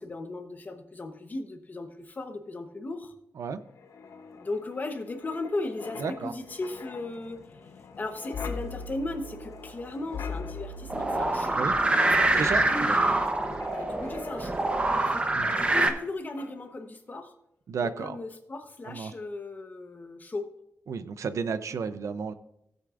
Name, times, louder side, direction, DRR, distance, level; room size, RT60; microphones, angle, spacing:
voice 1, 0.0-3.1 4.3-7.7 8.0-11.6 12.0-13.3 13.7-17.3 17.8-20.5, left 2 dB, 35° left, 6 dB, 1.0 m, -37 dB
Wind, 3.7-16.1 16.4-16.6, left 4 dB, 75° left, 0.9 m, -42 dB
voice 2, 6.0-6.3 11.6-11.7 12.4-12.7 15.4-15.6 17.7-18.2 18.9-19.1 20.9-22.3, right 5 dB, 80° right, 12 dB, 0.6 m, -32 dB
sound 1, 10.9-15.9, right 2 dB, 20° right, 0.9 m, -25 dB
16.5 x 8.1 x 2.5 m, 0.80 s
wide cardioid pair, 160°, 5 cm